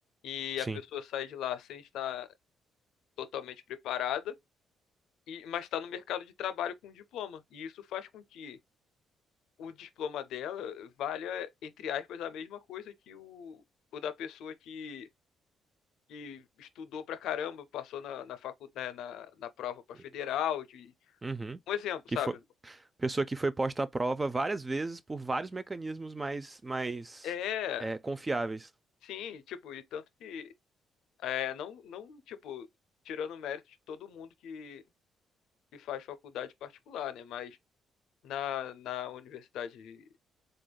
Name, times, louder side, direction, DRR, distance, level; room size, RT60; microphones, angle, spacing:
voice 1, 0.2-2.3 3.2-4.4 5.3-8.6 9.6-13.6 13.9-15.1 16.1-20.9 21.7-22.3 27.2-27.9 29.0-30.5 31.2-32.7 33.1-33.6 33.9-34.8 35.7-37.6 38.2-40.0, left 10 dB, 85° left, 0.5 m, -38 dB
voice 2, 21.2-21.6 22.1-22.2 22.7-27.3 27.8-28.7, right 2 dB, 20° right, 0.4 m, -33 dB
3.8 x 3.4 x 2.2 m
cardioid pair, 90°, 0 cm